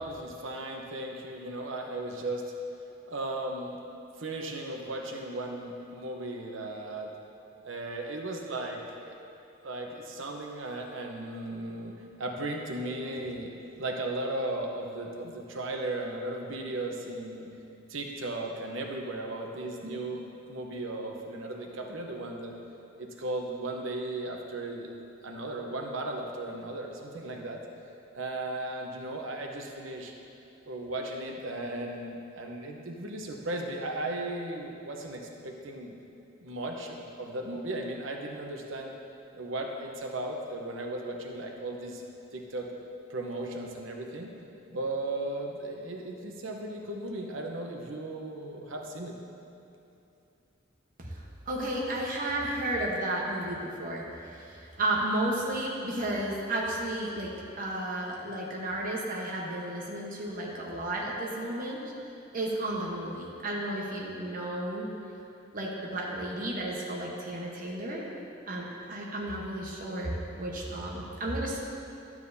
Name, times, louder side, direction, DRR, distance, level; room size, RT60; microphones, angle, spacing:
voice 1, 0.0-2.5 3.1-3.8 4.2-7.1 7.6-9.1 9.6-17.5 17.9-20.2 20.5-22.6 23.0-24.9 25.2-27.6 28.1-30.1 30.6-35.9 36.4-38.9 39.3-42.0 42.3-42.7 43.1-44.3 44.7-49.2, right 2 dB, 90° right, 1 dB, 0.9 m, -36 dB
voice 2, 51.0-57.3 57.6-61.8 62.3-64.9 65.5-68.0 68.5-71.6, right 1 dB, 45° right, -3 dB, 1.1 m, -33 dB
12.0 x 7.3 x 2.7 m, 2.8 s
head